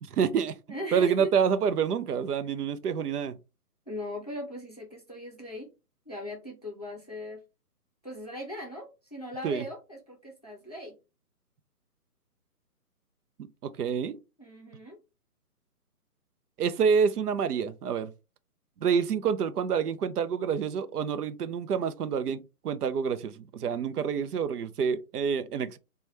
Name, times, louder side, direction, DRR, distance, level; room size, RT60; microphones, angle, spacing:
voice 1, 0.0-0.6 0.9-3.4 9.4-9.6 13.6-14.2 16.6-18.1 18.8-25.8, right 6 dB, 75° right, 0.6 m, -27 dB
voice 2, 0.7-1.3 3.9-5.7 6.1-7.4 8.0-11.0 13.8-13.9 14.4-15.0, equal, 30° left, 0.4 m, -39 dB
3.2 x 2.2 x 2.9 m
hypercardioid pair, 170°, 46 cm